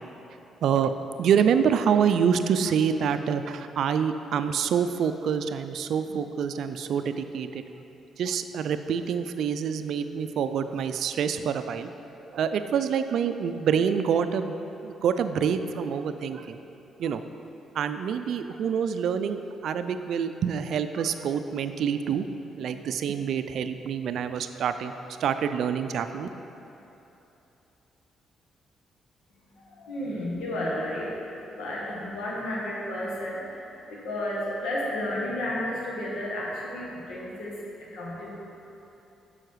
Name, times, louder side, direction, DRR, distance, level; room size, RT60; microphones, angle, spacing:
voice 1, 1.2-7.6 8.2-11.9 12.3-14.6 14.8-16.6 17.0-17.2 17.7-22.3 22.6-24.9 25.2-26.3, right 7 dB, 70° right, 9 dB, 0.3 m, -26 dB
voice 2, 29.5-37.5 37.9-38.3, left 1 dB, 80° left, -4 dB, 1.7 m, -32 dB
7.7 x 5.6 x 4.7 m, 3.0 s
supercardioid pair, 65°, 0 cm